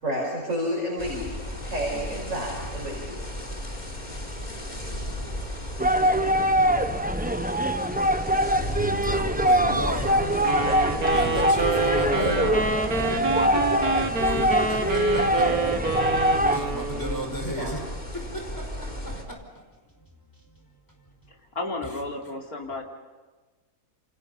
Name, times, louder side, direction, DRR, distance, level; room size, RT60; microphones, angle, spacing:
voice 1, 0.0-3.1 12.2-12.7 17.4-17.7, equal, 60° right, -2 dB, 6.0 m, -30 dB
sound 1, 1.0-19.2, left 1 dB, 30° left, 3.6 m, -35 dB
voice 2, 4.9-6.7 7.9-8.0 8.7-12.4 14.2-17.8 18.1-19.7 20.4-20.5, right 1 dB, 15° left, 2 dB, 5.1 m, -35 dB
sound 2, 5.8-16.6, right 1 dB, 5° right, 0.9 m, -23 dB
sound 3, 10.4-17.4, right 3 dB, 80° right, 2.4 m, -28 dB
voice 3, 21.3-22.8, left 2 dB, 80° left, 2 dB, 3.8 m, -33 dB
29.0 x 27.5 x 5.6 m, 1.3 s
omnidirectional pair, 1.5 m